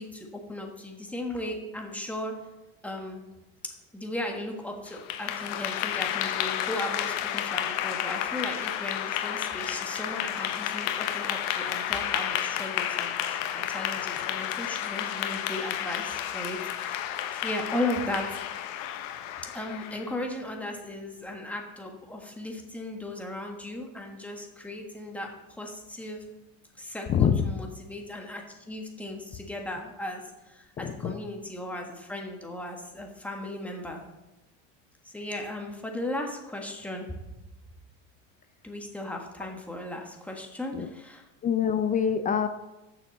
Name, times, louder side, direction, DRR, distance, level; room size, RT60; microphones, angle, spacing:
voice 1, 0.0-2.3 2.8-3.2 3.9-17.1 17.4-18.3 19.4-26.2 26.8-34.0 35.0-37.1 38.6-41.2, left 1 dB, 5° left, 1 dB, 1.4 m, -36 dB
Clapping / Applause, 4.9-20.1, left 11 dB, 70° left, 1.0 m, -31 dB
voice 2, 27.1-27.4 30.8-31.2 40.7-40.9 41.4-42.5, left 8 dB, 20° left, 9 dB, 0.3 m, -25 dB
7.0 x 6.2 x 6.8 m, 1.0 s
supercardioid pair, 125°, 40 cm